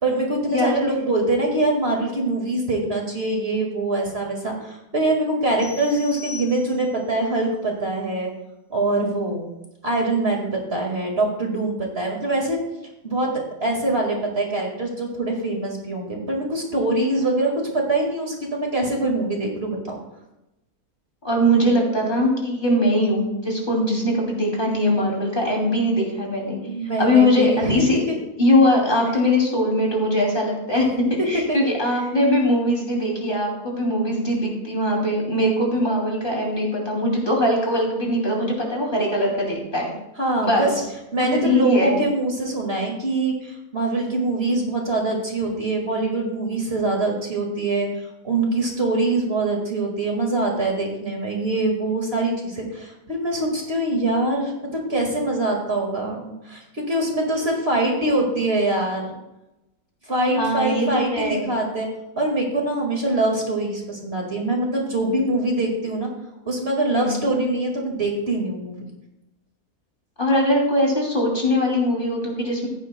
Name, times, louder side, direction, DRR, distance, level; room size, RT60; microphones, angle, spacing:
voice 1, 0.0-8.3 8.7-9.5 9.8-12.6 13.0-13.3 13.6-20.0 26.6-28.1 31.5-31.6 31.9-32.0 40.2-40.7 41.1-59.1 60.1-61.9 62.1-66.1 66.4-68.8, right 2 dB, 40° right, 0 dB, 2.1 m, -24 dB
sound 1, 5.6-7.1, left 6 dB, 75° right, 4.9 m, -39 dB
voice 2, 21.2-26.6 27.0-28.0 28.4-30.9 31.3-39.9 40.4-40.7 41.2-42.0 60.3-61.4 66.9-67.2 70.2-72.7, left 1 dB, 35° left, -2 dB, 2.9 m, -21 dB
15.0 x 10.5 x 2.2 m, 0.93 s
omnidirectional pair, 1.6 m